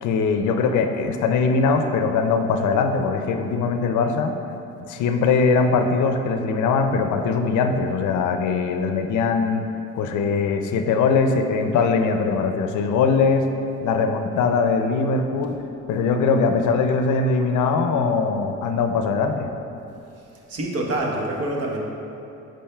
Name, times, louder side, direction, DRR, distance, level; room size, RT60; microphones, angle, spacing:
voice 1, 0.0-4.3 4.9-9.6 10.0-13.5 13.8-15.6 15.9-19.5, left 4 dB, 75° left, 6 dB, 0.5 m, -21 dB
voice 2, 20.5-21.8, right 1 dB, 55° right, -1 dB, 1.0 m, -26 dB
8.6 x 5.1 x 2.3 m, 2.8 s
cardioid pair, 90°, 30 cm